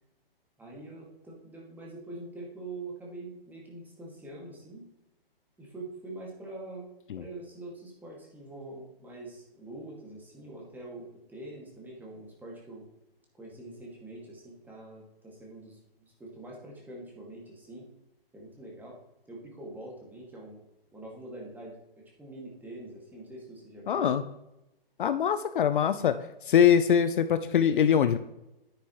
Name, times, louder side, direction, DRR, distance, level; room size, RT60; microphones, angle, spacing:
voice 1, 0.6-4.9 5.6-12.8 13.4-17.9 18.3-19.0 19.3-20.6 20.9-24.1, right 2 dB, 5° right, -2 dB, 2.1 m, -44 dB
voice 2, 23.9-24.2 25.0-26.2 26.5-28.2, left 8 dB, 55° left, 11 dB, 0.6 m, -23 dB
9.8 x 9.4 x 3.1 m, 0.91 s
hypercardioid pair, 135°, 30 cm